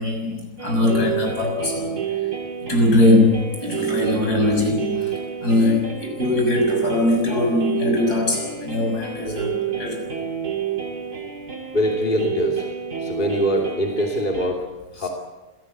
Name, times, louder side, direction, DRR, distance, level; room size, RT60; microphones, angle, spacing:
voice 1, 0.0-2.0 2.7-5.1 5.4-10.2 15.0-15.1, left 2 dB, 60° left, 2 dB, 7.1 m, -21 dB
sound 1, 0.6-14.5, right 8 dB, 60° right, 3.2 m, -29 dB
voice 2, 11.7-12.7 13.0-14.6 14.9-15.1, left 1 dB, 30° left, 0 dB, 3.1 m, -23 dB
26.0 x 17.5 x 8.2 m, 1.1 s
omnidirectional pair, 1.9 m